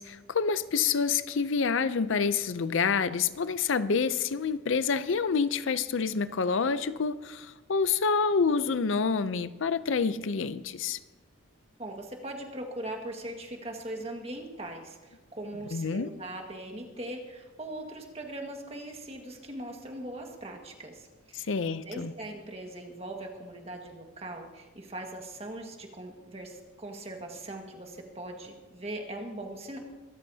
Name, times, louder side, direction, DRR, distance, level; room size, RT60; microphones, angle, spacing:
voice 1, 0.0-11.0 15.7-16.1 21.3-22.1, left 5 dB, 65° left, 0.5 m, -28 dB
voice 2, 11.8-21.5 21.8-29.8, right 1 dB, 30° right, 1.7 m, -40 dB
22.5 x 13.5 x 2.8 m
head